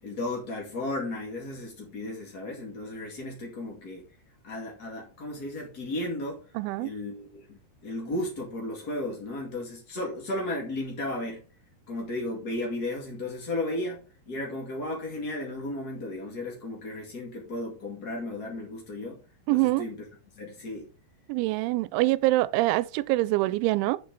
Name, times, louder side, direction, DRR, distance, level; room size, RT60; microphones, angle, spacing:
voice 1, 0.0-4.0 4.4-6.4 6.8-11.4 11.9-14.0 14.3-19.2 19.5-20.0 20.4-20.9, left 1 dB, 45° left, 1.2 m, -34 dB
voice 2, 6.6-6.9 19.5-19.9 21.3-24.0, right 19 dB, 90° right, 3.0 m, -25 dB
8.3 x 7.6 x 4.0 m
omnidirectional pair, 5.3 m